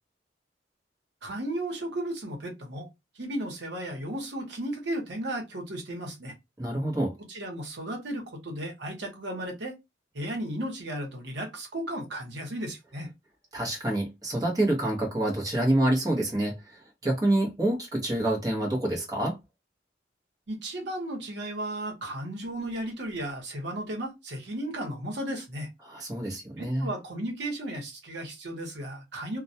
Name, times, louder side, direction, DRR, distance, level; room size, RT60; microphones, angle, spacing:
voice 1, 1.2-2.9 3.2-6.3 7.3-9.7 10.1-13.1 20.5-25.7 26.6-29.4, right 1 dB, 70° right, 0.9 m, -34 dB
voice 2, 6.6-7.1 13.5-19.4 25.8-26.9, right 1 dB, 20° right, 0.7 m, -27 dB
2.2 x 2.1 x 2.6 m
head